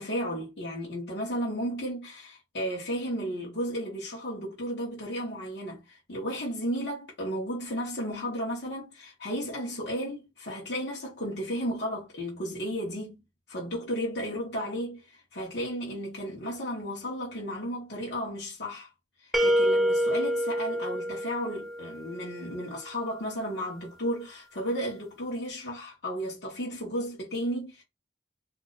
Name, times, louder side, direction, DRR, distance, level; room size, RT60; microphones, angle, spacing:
voice 1, 0.0-13.2 13.5-18.9 19.2-27.8, equal, 70° left, 1.3 m, -34 dB
sound 1, 19.3-22.2, equal, ahead, 0.4 m, -26 dB
2.8 x 2.4 x 3.9 m
head